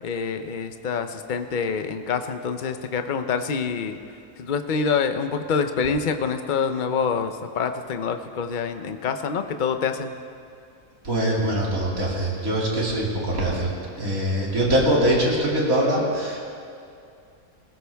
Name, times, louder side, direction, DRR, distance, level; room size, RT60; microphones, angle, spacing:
voice 1, 0.0-4.0 4.4-10.1, left 5 dB, 45° left, 7 dB, 0.7 m, -26 dB
voice 2, 11.0-13.7 14.0-16.4, right 1 dB, 65° right, -4 dB, 3.2 m, -23 dB
20.0 x 16.0 x 3.5 m, 2.5 s
omnidirectional pair, 1.6 m